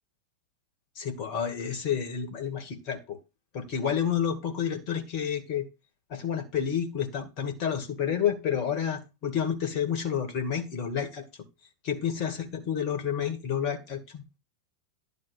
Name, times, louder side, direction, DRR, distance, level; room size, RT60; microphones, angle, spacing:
voice 1, 1.0-3.2 3.5-5.7 6.1-11.2 11.8-14.2, left 8 dB, 40° left, 6 dB, 2.3 m, -30 dB
11.5 x 3.9 x 7.4 m, 0.27 s
figure-of-eight pair, 90°, 0 cm